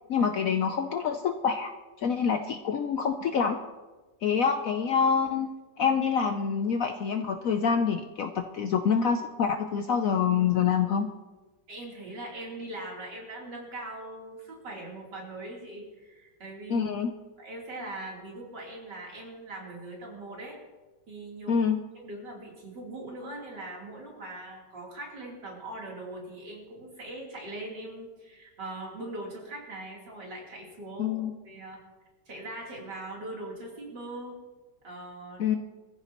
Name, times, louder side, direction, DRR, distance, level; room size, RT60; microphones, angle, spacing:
voice 1, 0.1-1.7 2.0-3.6 4.2-5.5 5.8-11.1 16.7-17.1 21.5-21.8 31.0-31.3 35.4-35.6, left 6 dB, 60° left, 6 dB, 0.9 m, -26 dB
voice 2, 11.7-16.9 17.4-20.6 21.1-21.5 21.9-31.8 32.3-34.4 34.8-35.6, right 2 dB, 70° right, -3 dB, 4.0 m, -41 dB
23.0 x 14.5 x 3.0 m, 1.2 s
omnidirectional pair, 1.9 m